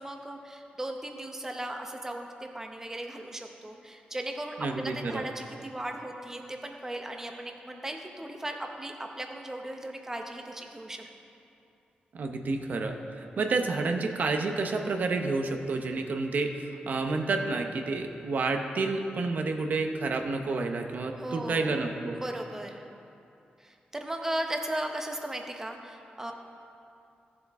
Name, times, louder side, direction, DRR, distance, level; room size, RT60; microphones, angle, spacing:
voice 1, 0.0-2.3 2.5-11.0 21.2-21.7 22.1-22.8 23.6-26.3, right 1 dB, 15° right, 3 dB, 0.9 m, -37 dB
voice 2, 4.6-5.3 12.1-22.2, right 3 dB, 60° right, 4 dB, 0.8 m, -30 dB
15.5 x 7.5 x 3.6 m, 2.6 s
wide cardioid pair, 125°, 3 cm